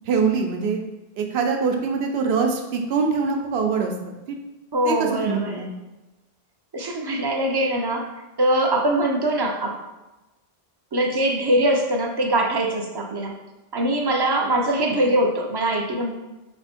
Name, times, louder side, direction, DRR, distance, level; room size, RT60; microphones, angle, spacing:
voice 1, 0.1-0.8 1.2-4.4 4.8-5.7, right 5 dB, 85° right, 3 dB, 0.8 m, -24 dB
voice 2, 4.7-5.6 6.7-8.1 8.4-9.8 10.9-13.3 13.7-16.1, right 1 dB, 40° right, 1 dB, 0.3 m, -22 dB
3.3 x 2.7 x 4.3 m, 1.1 s
omnidirectional pair, 1.0 m